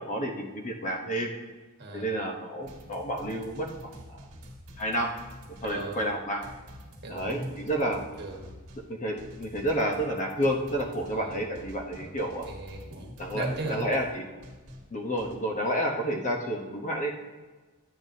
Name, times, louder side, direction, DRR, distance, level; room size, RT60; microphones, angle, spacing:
voice 1, 0.0-1.3 1.9-3.9 4.8-5.1 5.6-6.4 7.1-8.0 8.9-12.5 13.2-14.3 14.9-17.1, equal, 35° left, 2 dB, 0.9 m, -30 dB
voice 2, 1.8-2.2 5.6-6.1 7.0-7.6 8.2-8.5 11.1-11.4 12.0-12.1 12.4-13.9, right 2 dB, 50° right, 0 dB, 1.4 m, -37 dB
sound 1, 2.6-15.4, equal, 65° right, 1.5 m, -48 dB
10.5 x 8.1 x 2.7 m, 1.3 s
head